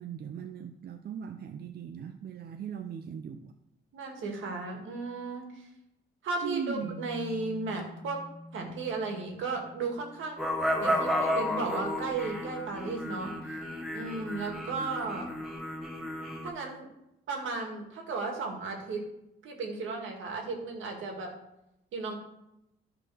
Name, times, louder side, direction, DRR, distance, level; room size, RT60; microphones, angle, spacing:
voice 1, 0.0-3.5 6.4-7.0, right 7 dB, 50° right, 7 dB, 0.6 m, -39 dB
voice 2, 3.9-5.7 6.2-8.2 8.5-10.4 10.8-13.3 13.9-15.3 16.4-16.9 17.3-19.0 19.4-21.3 21.9-22.2, right 3 dB, 80° right, 2 dB, 2.0 m, -35 dB
sound 1, 6.8-11.1, left 1 dB, 65° left, 1.2 m, -48 dB
sound 2, 10.4-16.5, left 1 dB, ahead, 1.9 m, -32 dB
11.0 x 4.0 x 6.2 m, 0.87 s
cardioid pair, 90°, 20 cm